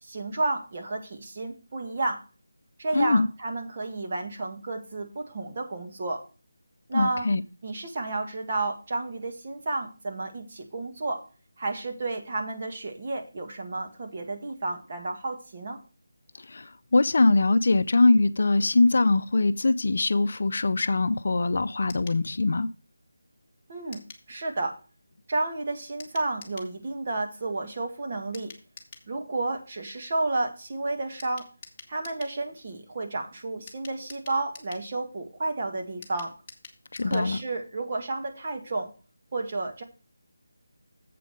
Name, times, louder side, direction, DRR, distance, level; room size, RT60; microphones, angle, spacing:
voice 1, 0.0-2.2 2.8-6.2 6.9-7.3 7.6-11.2 11.6-15.8 23.7-24.0 24.3-24.8 25.3-28.5 29.1-31.5 31.9-36.3 37.0-38.9 39.3-39.8, right 2 dB, 35° right, 1.8 m, -31 dB
voice 2, 2.9-3.3 6.9-7.4 16.4-22.7 36.9-37.4, left 3 dB, 55° left, 0.5 m, -22 dB
sound 1, 21.9-22.2 23.9-24.3 26.0-26.7 28.3-29.1 31.2-32.4 33.7-34.9 36.0-37.3 37.6-37.7 37.9-38.0, left 4 dB, 20° left, 1.3 m, -47 dB
7.6 x 5.0 x 6.4 m
figure-of-eight pair, 165°, 0 cm